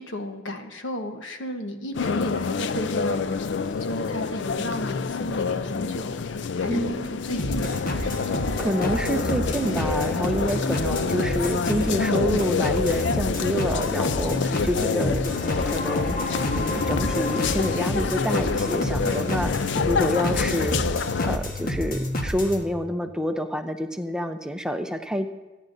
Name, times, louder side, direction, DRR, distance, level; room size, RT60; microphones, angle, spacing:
voice 1, 0.0-3.5 3.8-8.4, left 1 dB, 85° left, 5 dB, 1.2 m, -34 dB
sound 1, 1.9-21.4, left 5 dB, 65° left, 0.4 m, -27 dB
voice 2, 6.7-7.1 8.6-21.0 21.2-25.3, equal, 5° right, 6 dB, 0.6 m, -28 dB
trippy bgloop, 7.4-22.6, left 1 dB, 50° left, 1.3 m, -29 dB
28.0 x 9.9 x 2.6 m, 1.1 s
head